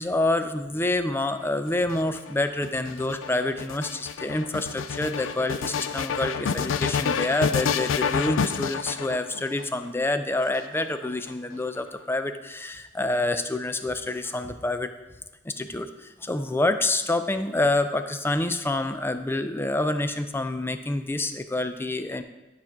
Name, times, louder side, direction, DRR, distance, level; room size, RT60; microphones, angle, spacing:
voice 1, 0.0-14.9 15.4-22.2, left 2 dB, 10° left, 9 dB, 0.5 m, -27 dB
sound 1, 1.7-9.6 10.4-11.3, left 6 dB, 85° left, 0.4 m, -29 dB
11.5 x 5.9 x 3.6 m, 1.1 s
head